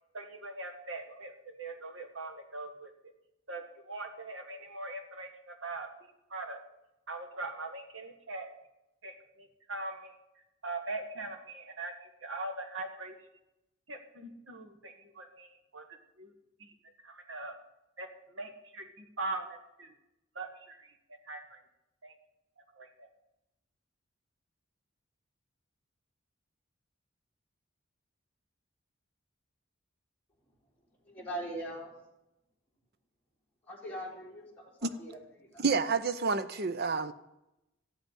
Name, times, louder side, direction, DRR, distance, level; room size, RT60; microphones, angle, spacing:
voice 1, 0.1-2.9 3.5-5.9 6.3-6.6 7.1-8.5 9.0-10.2 10.6-13.2 13.9-15.9 16.2-16.3 16.6-16.7 17.0-17.5 18.0-19.9 20.4-20.9 21.3-21.6 22.0-22.1 22.8-23.1, right 2 dB, 70° right, 1.7 m, -41 dB
voice 2, 31.0-32.0 33.7-35.6, right 1 dB, 10° left, 3.4 m, -41 dB
voice 3, 35.6-37.1, right 4 dB, 50° right, 0.7 m, -29 dB
13.5 x 6.3 x 9.9 m
head